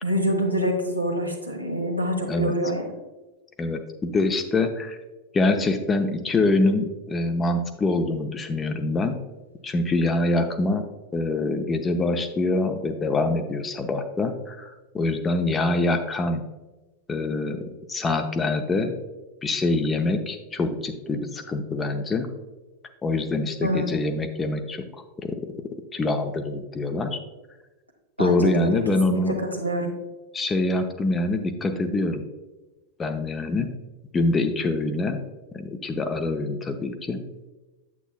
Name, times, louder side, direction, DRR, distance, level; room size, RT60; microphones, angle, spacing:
voice 1, 0.0-2.8 23.6-23.9 28.2-28.8 29.1-29.9, equal, 90° right, 1 dB, 1.2 m, -26 dB
voice 2, 3.6-5.0 5.3-9.2 9.6-10.8 11.1-16.4 17.1-17.6 17.9-19.0 19.4-22.3 23.0-25.4 25.9-27.2 28.2-29.4 30.3-32.2 33.0-33.7 34.1-35.2 35.5-37.2, left 2 dB, 20° left, 7 dB, 0.7 m, -25 dB
8.3 x 7.9 x 2.3 m, 1.1 s
figure-of-eight pair, 90°, 0 cm